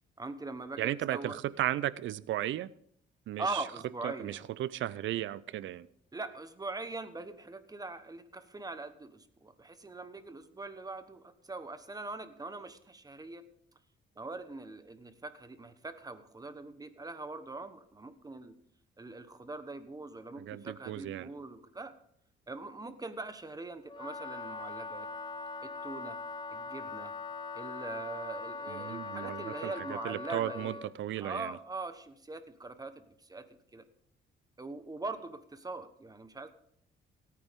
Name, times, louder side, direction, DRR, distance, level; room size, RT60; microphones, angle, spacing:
voice 1, 0.2-1.4 3.4-4.4 6.1-13.4 14.2-18.5 19.0-21.9 22.5-25.1 25.6-26.2 26.5-27.1 27.5-30.8 31.2-33.5 33.7-33.8 34.6-36.5, right 3 dB, 20° right, 11 dB, 1.2 m, -42 dB
voice 2, 0.8-2.7 3.3-3.6 4.0-5.9 20.4-21.3 28.7-31.6, right 13 dB, 75° right, 19 dB, 0.6 m, -35 dB
Wind instrument woodwind instrument, 23.9-30.9, left 4 dB, 25° left, 1.0 m, -41 dB
17.0 x 9.4 x 3.7 m, 0.67 s
cardioid pair, 90°, 20 cm